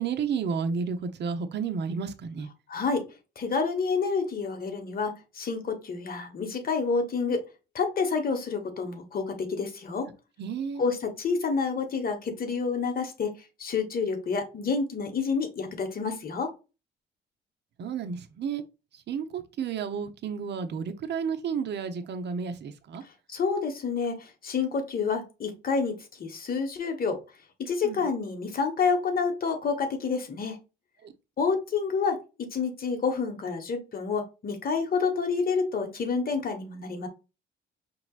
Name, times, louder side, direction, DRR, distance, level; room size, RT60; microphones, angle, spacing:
voice 1, 0.0-2.5 10.4-10.8 17.8-18.6 19.1-23.0 27.8-28.1 31.0-31.1, right 6 dB, 60° right, 0.8 m, -31 dB
voice 2, 2.7-3.1 3.4-7.4 7.7-10.1 10.8-13.3 13.6-16.5 23.3-27.2 27.6-30.6 31.4-37.1, left 5 dB, 45° left, 1.3 m, -28 dB
5.3 x 2.9 x 2.4 m
cardioid pair, 90°, 20 cm